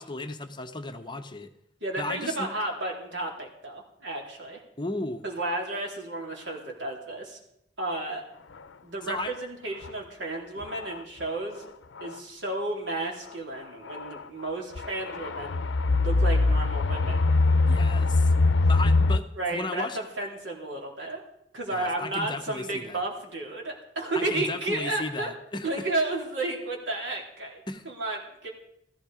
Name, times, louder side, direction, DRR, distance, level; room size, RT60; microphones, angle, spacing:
voice 1, 0.0-1.5 2.0-2.5 4.8-5.2 9.1-9.3 17.7-18.3 18.7-20.0 21.7-23.0 24.1-25.8 27.7-27.8, left 2 dB, 25° left, 7 dB, 0.9 m, -35 dB
voice 2, 1.8-4.6 5.2-7.4 7.8-8.2 8.8-11.7 12.0-15.6 16.0-17.3 19.4-21.2 21.5-25.3 25.6-28.5, right 2 dB, 85° right, 0 dB, 3.6 m, -32 dB
sound 1, 9.8-9.9 10.6-11.0 12.0-12.1 13.9-14.2 14.8-19.2, left 3 dB, 90° left, 0.6 m, -23 dB
15.0 x 14.5 x 5.0 m, 0.78 s
head